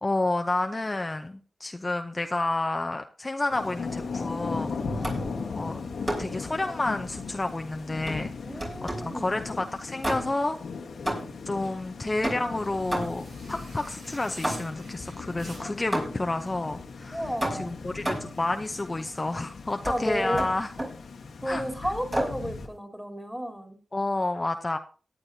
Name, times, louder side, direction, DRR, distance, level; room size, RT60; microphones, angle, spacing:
voice 1, 0.0-5.2 5.6-5.8 6.2-8.3 9.0-10.6 11.5-17.2 17.5-20.7 21.5-21.6 23.9-24.8, left 2 dB, 30° left, 7 dB, 0.7 m, -30 dB
Thunder / Rain, 3.5-22.7, left 4 dB, 85° left, 1.4 m, -38 dB
voice 2, 4.9-5.4 8.4-9.5 11.7-11.8 15.6-15.7 17.1-17.7 19.9-20.4 21.4-23.8, equal, 10° right, 4 dB, 3.5 m, -33 dB
sound 1, 5.0-5.4 6.1-6.4 8.1-9.2 10.0-10.5 11.1-11.5 12.2-13.4 14.4-14.9 15.9-16.4 17.4-18.4 19.8-20.0 20.4-21.0 22.1-22.5, right 1 dB, 35° right, 5.1 m, -32 dB
sound 2, 11.5-15.9, right 1 dB, 90° right, 7.5 m, -50 dB
18.0 x 9.7 x 2.8 m, 0.37 s
cardioid pair, 50°, 0 cm